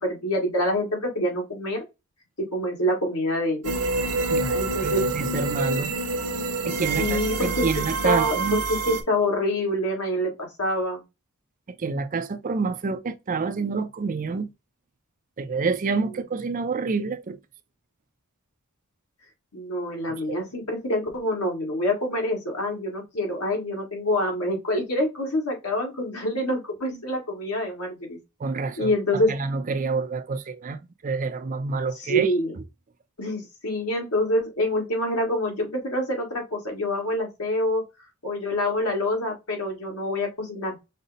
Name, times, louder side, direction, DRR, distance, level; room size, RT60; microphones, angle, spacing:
voice 1, 0.0-1.8 2.4-3.7 4.5-5.0 7.0-11.0 19.5-28.2 28.8-29.3 31.9-32.5 33.2-37.8 38.2-40.8, left 1 dB, 85° left, 1.5 m, -26 dB
sound 1, 3.6-9.0, right 3 dB, 85° right, 0.8 m, -27 dB
voice 2, 4.3-5.9 6.6-8.6 11.8-14.5 15.4-17.4 28.4-32.3, right 4 dB, 35° right, 0.4 m, -28 dB
5.3 x 2.0 x 3.9 m
head